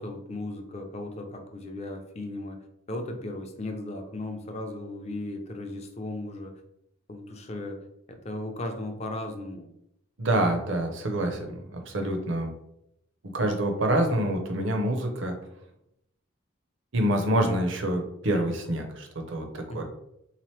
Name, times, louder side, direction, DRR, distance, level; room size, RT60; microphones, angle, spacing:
voice 1, 0.0-6.6 7.1-7.8 8.1-9.7 19.7-19.8, left 2 dB, 30° left, 4 dB, 0.5 m, -36 dB
voice 2, 10.2-12.5 13.2-15.3 16.9-19.8, right 1 dB, 60° right, 4 dB, 0.7 m, -26 dB
3.7 x 2.9 x 3.1 m, 0.80 s
head